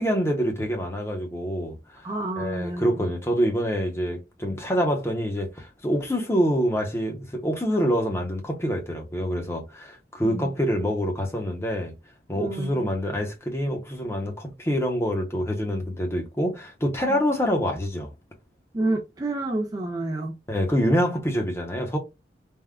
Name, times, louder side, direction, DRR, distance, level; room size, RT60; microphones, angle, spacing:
voice 1, 0.0-2.1 2.4-11.9 12.3-18.1 20.5-22.0, equal, 15° left, 0.7 m, -26 dB
voice 2, 2.0-3.1 10.2-10.6 12.4-12.9 17.1-17.2 18.7-20.4, right 2 dB, 20° right, 0.4 m, -29 dB
3.5 x 2.1 x 2.2 m
head